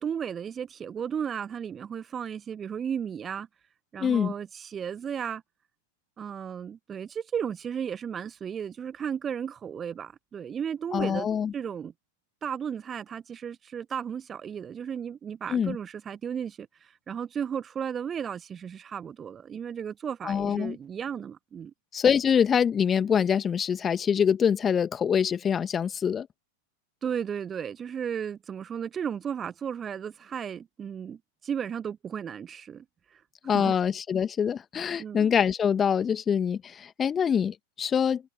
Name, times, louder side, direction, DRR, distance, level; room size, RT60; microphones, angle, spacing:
voice 1, 0.0-3.5 3.9-5.4 6.2-11.3 11.5-11.9 12.4-21.7 27.0-32.8 33.1-33.7 35.0-35.3, right 8 dB, 20° right, 1.1 m, -34 dB
voice 2, 4.0-4.3 10.9-11.5 15.5-15.8 20.2-20.8 21.9-26.3 33.4-38.3, left 7 dB, 20° left, 1.9 m, -25 dB
figure-of-eight pair, 90°, 0 cm